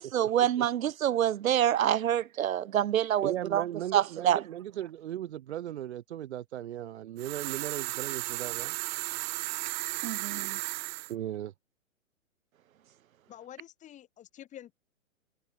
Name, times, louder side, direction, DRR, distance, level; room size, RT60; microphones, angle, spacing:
voice 1, 0.0-3.6 3.9-4.4 10.0-10.6, right 11 dB, 85° right, 0.6 m, -27 dB
voice 2, 3.2-8.8 11.1-11.5, right 12 dB, 55° right, 0.8 m, -37 dB
sound 1, 7.2-11.1, right 22 dB, 35° right, 2.1 m, -35 dB
voice 3, 13.3-14.7, left 11 dB, 20° left, 4.3 m, -48 dB
hypercardioid pair, 140°, 40 cm